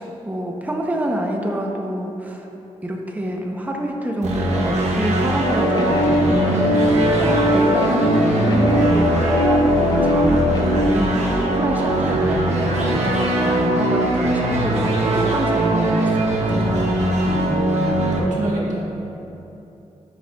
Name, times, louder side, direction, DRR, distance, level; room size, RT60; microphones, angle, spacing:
voice 1, 0.0-2.5 2.8-16.7, right 1 dB, 15° right, 1 dB, 0.6 m, -27 dB
sound 1, 4.2-18.2, right 1 dB, 70° right, 0.9 m, -20 dB
sound 2, 5.4-10.9, left 1 dB, 35° left, 0.6 m, -21 dB
voice 2, 17.2-18.8, equal, 90° right, -5 dB, 1.5 m, -26 dB
10.5 x 6.4 x 2.3 m, 2.9 s
cardioid pair, 90°, 12 cm